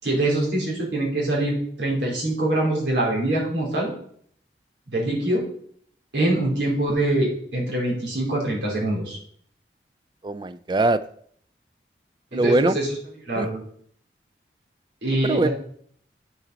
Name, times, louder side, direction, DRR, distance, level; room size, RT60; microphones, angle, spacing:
voice 1, 0.0-3.9 4.9-5.4 6.1-9.2 12.3-12.9 13.3-13.6 15.0-15.5, right 1 dB, 90° right, -3 dB, 3.6 m, -24 dB
voice 2, 10.2-11.0 12.3-12.8 13.4-13.5 15.2-15.5, right 2 dB, 25° right, 14 dB, 0.3 m, -21 dB
8.6 x 7.1 x 4.0 m, 0.62 s
head